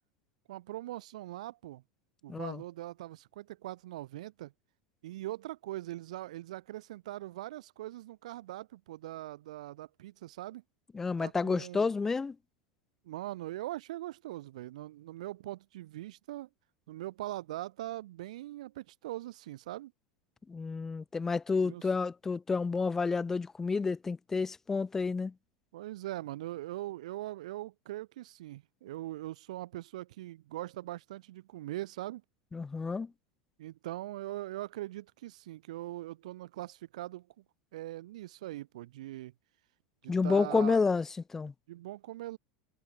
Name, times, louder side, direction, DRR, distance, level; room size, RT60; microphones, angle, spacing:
voice 1, 0.5-1.8 2.2-4.5 5.0-10.6 11.2-11.9 13.1-16.5 16.9-19.9 21.6-21.8 25.7-32.2 33.6-37.3 37.7-39.3 40.0-40.8 41.7-42.4, right 15 dB, 85° right, 1.9 m, -41 dB
voice 2, 2.3-2.6 10.9-12.3 20.5-25.3 32.5-33.1 40.1-41.5, left 4 dB, 10° left, 1.4 m, -30 dB
supercardioid pair, 160°, 4 cm